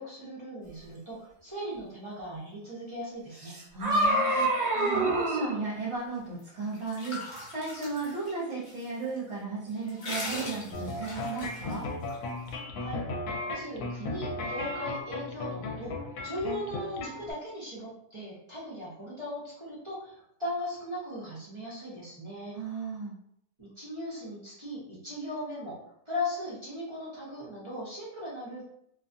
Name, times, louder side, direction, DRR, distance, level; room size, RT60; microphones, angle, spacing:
voice 1, 0.0-3.6 12.8-13.0 13.5-22.5 23.6-25.8 26.1-28.6, left 1 dB, 25° right, -9 dB, 0.6 m, -38 dB
sound 1, 3.4-5.6, right 1 dB, 90° right, 0.3 m, -26 dB
voice 2, 3.7-11.8 22.5-23.1, right 4 dB, 50° right, -8 dB, 1.1 m, -35 dB
sound 2, 6.4-8.8 9.2-9.3 9.7-12.2, left 2 dB, 45° left, 0.6 m, -40 dB
sound 3, 10.7-17.3, left 2 dB, 80° left, 1.1 m, -36 dB
2.7 x 2.3 x 2.6 m, 0.74 s
omnidirectional pair, 1.6 m